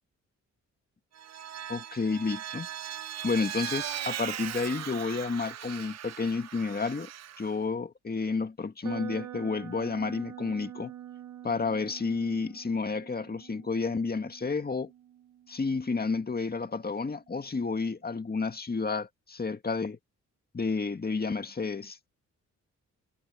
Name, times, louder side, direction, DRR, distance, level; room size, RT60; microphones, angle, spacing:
Vehicle, 1.1-7.5, right 11 dB, 55° right, 0.6 m, -39 dB
voice 1, 1.7-2.7 3.2-7.1 7.4-10.9 11.4-14.9 15.5-20.0 20.5-22.1, left 4 dB, 30° left, 1.9 m, -31 dB
sound 1, 8.8-16.8, right 12 dB, 90° right, 3.0 m, -46 dB
cardioid pair, 80°, 31 cm